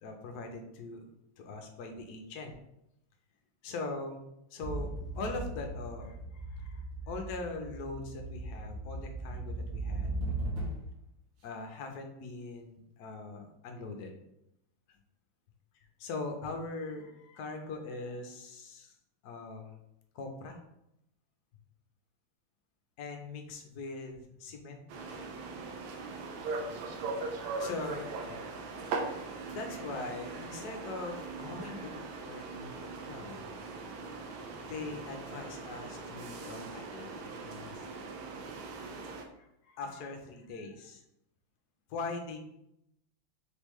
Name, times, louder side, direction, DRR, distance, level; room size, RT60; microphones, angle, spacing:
voice 1, 0.0-1.1 1.4-2.5 3.6-4.2 4.5-4.9 5.1-10.1 11.4-14.1 16.0-19.0 19.2-19.8 20.1-20.6 23.0-24.8 27.6-28.1 29.5-33.5 34.7-37.9 39.3-41.0 41.9-42.5, left 3 dB, 70° left, 4 dB, 0.9 m, -41 dB
sound 1, 4.6-11.0, right 2 dB, 85° right, 2.1 m, -38 dB
sound 2, 24.9-39.2, right 3 dB, 70° right, 1.3 m, -40 dB
4.4 x 3.5 x 3.1 m, 0.81 s
omnidirectional pair, 2.4 m